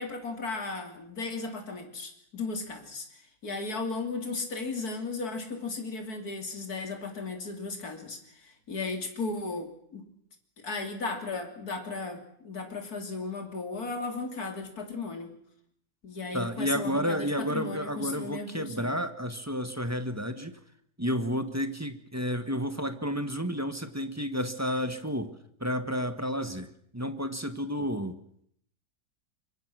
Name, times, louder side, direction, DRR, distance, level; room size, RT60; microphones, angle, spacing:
voice 1, 0.0-3.1 3.4-8.2 8.7-10.0 10.6-15.3 16.0-19.0, left 3 dB, 55° left, 4 dB, 3.7 m, -35 dB
voice 2, 16.3-20.6 21.0-25.3 25.6-28.2, equal, 10° right, 9 dB, 1.4 m, -31 dB
25.5 x 24.0 x 6.3 m, 0.69 s
omnidirectional pair, 1.9 m